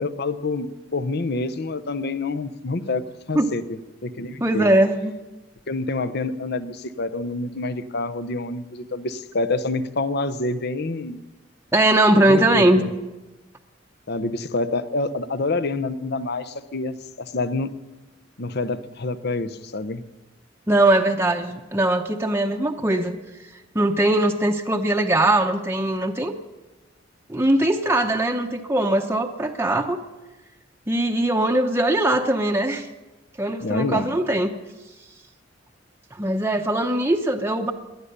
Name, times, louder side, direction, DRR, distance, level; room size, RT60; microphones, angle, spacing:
voice 1, 0.0-4.7 5.7-11.2 12.3-12.9 14.1-17.7 18.4-20.0 33.6-34.1, left 3 dB, 55° left, 14 dB, 0.8 m, -27 dB
voice 2, 4.4-5.1 11.7-12.8 20.7-23.1 23.5-26.3 27.3-30.0 30.9-32.9 33.4-34.5 36.1-37.7, right 1 dB, 15° right, 3 dB, 0.8 m, -20 dB
18.5 x 11.5 x 6.7 m, 1.1 s
head